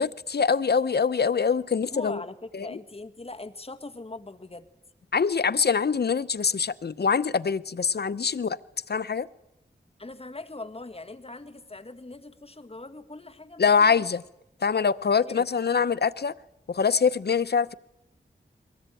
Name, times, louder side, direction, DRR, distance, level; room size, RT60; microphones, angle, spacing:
voice 1, 0.0-2.2 2.5-2.7 5.1-8.6 8.9-9.3 13.6-14.2 14.6-16.3 16.7-17.7, left 6 dB, 60° left, 16 dB, 0.8 m, -24 dB
voice 2, 1.9-4.7 10.0-14.0 15.3-15.5, left 2 dB, 30° left, 7 dB, 1.8 m, -41 dB
22.5 x 18.5 x 9.1 m, 0.87 s
cardioid pair, 50°, 18 cm